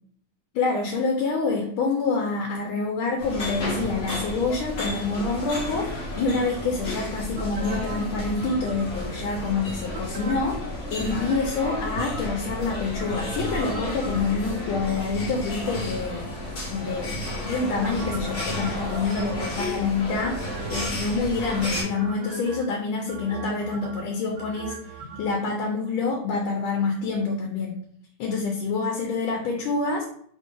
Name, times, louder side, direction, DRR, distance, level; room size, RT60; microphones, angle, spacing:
voice 1, 0.5-16.3 16.7-27.7 28.2-30.1, left 4 dB, 85° left, 1 dB, 1.4 m, -27 dB
sound 1, 3.2-21.8, left 1 dB, 45° left, 1.2 m, -32 dB
sound 2, 7.3-9.2 9.9-10.6 11.1-12.5 13.0-14.7 17.5-19.6 20.2-21.1 21.5-22.6 23.1-25.4 25.7-25.8, right 3 dB, 70° right, 1.2 m, -39 dB
sound 3, 12.7-22.8, left 2 dB, 30° left, 0.9 m, -45 dB
3.5 x 2.6 x 3.7 m, 0.64 s
omnidirectional pair, 2.2 m